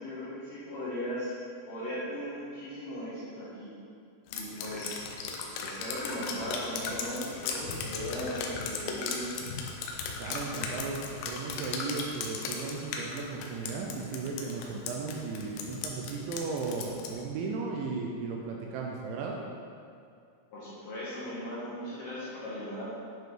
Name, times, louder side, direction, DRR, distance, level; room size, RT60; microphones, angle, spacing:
voice 1, 0.0-1.3 1.7-3.7 4.3-5.0 5.6-9.3 20.5-22.9, equal, 65° left, -10 dB, 2.1 m, -38 dB
Drip, 4.3-17.2, left 5 dB, 90° left, 2.6 m, -37 dB
voice 2, 10.2-11.0 11.2-19.4, right 4 dB, 80° right, 0 dB, 2.7 m, -35 dB
9.2 x 5.4 x 3.8 m, 2.4 s
omnidirectional pair, 5.8 m